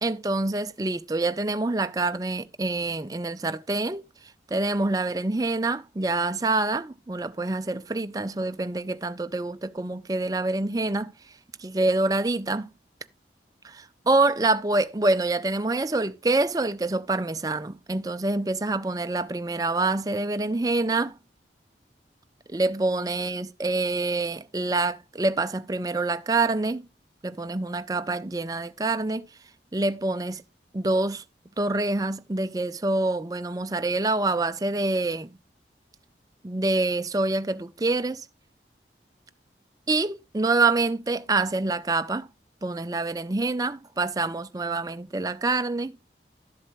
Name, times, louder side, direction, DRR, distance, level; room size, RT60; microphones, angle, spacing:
voice 1, 0.0-4.0 4.5-11.1 11.6-12.7 13.6-21.1 22.5-26.8 27.2-29.3 29.7-30.4 30.7-31.2 31.6-35.3 36.4-38.2 39.9-42.3 42.6-45.9, right 2 dB, 20° right, 0.4 m, -26 dB
12.5 x 7.7 x 3.1 m
head